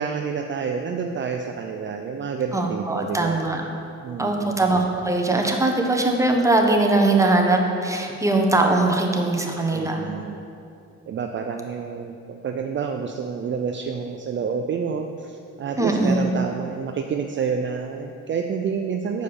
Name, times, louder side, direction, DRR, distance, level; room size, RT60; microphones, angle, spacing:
voice 1, 0.0-3.4 4.0-4.6 9.7-10.4 11.1-19.2, right 6 dB, 40° right, 4 dB, 0.5 m, -29 dB
voice 2, 2.5-3.6 4.2-10.1 15.8-16.3, right 2 dB, 10° right, 1 dB, 1.0 m, -21 dB
6.6 x 5.1 x 6.9 m, 2.6 s
cardioid pair, 90°, 30 cm